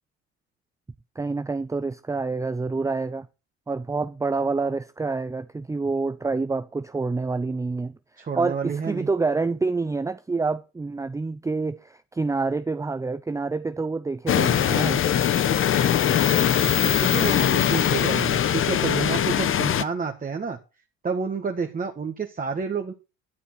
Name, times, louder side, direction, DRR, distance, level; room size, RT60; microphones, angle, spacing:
voice 1, 1.2-3.3 3.7-8.0 8.4-15.0, right 3 dB, 10° right, 0.6 m, -27 dB
voice 2, 8.2-9.1 17.0-20.6 21.0-22.9, right 5 dB, 30° right, 1.7 m, -29 dB
sound 1, 14.3-19.8, left 9 dB, 45° left, 1.0 m, -21 dB
12.5 x 6.9 x 6.2 m
supercardioid pair, 90°, 29 cm